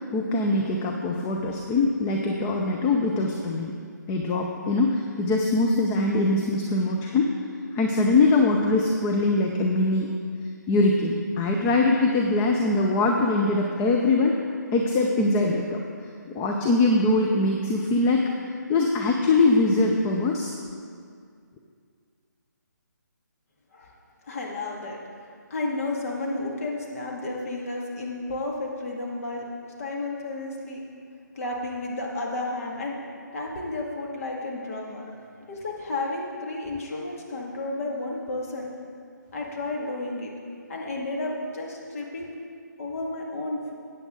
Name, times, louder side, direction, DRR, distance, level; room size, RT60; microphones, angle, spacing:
voice 1, 0.1-3.7 4.1-7.3 7.7-10.1 10.7-14.4 14.7-15.8 16.3-18.3 18.7-20.5, left 2 dB, 15° left, 1 dB, 0.5 m, -22 dB
voice 2, 24.2-25.0 25.5-29.4 29.8-30.8 31.3-33.0 33.3-35.0 35.5-38.7 39.3-40.3 40.7-42.3 42.8-43.7, left 2 dB, 50° left, -2 dB, 2.2 m, -32 dB
14.0 x 9.1 x 3.8 m, 2.2 s
figure-of-eight pair, 155°, 10 cm